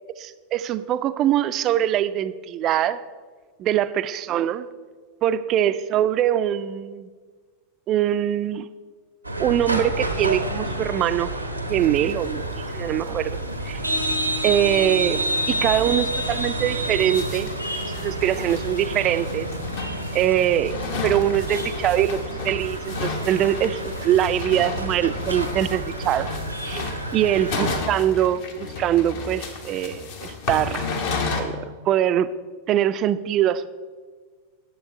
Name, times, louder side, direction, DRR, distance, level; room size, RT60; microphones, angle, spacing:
voice 1, 0.2-3.0 3.6-4.7 5.2-7.1 7.9-8.7 9.4-11.3 11.7-12.4 12.7-13.3 13.7-13.8 14.4-17.5 18.0-19.5 20.1-20.7 21.0-22.2 22.4-26.3 26.6-30.9 31.4-32.3 32.7-33.7, right 11 dB, 35° right, 14 dB, 0.4 m, -23 dB
sound 1, 9.2-27.8, right 1 dB, 85° right, 0.8 m, -29 dB
sound 2, 11.8-12.3 12.6-12.7 12.9-13.0 13.4-13.5 13.7-14.3 14.6-14.7 15.0-15.1 15.6-15.8 16.3-31.4, left 4 dB, 50° left, 1.2 m, -33 dB
9.7 x 7.0 x 4.5 m, 1.5 s
figure-of-eight pair, 90°, 0 cm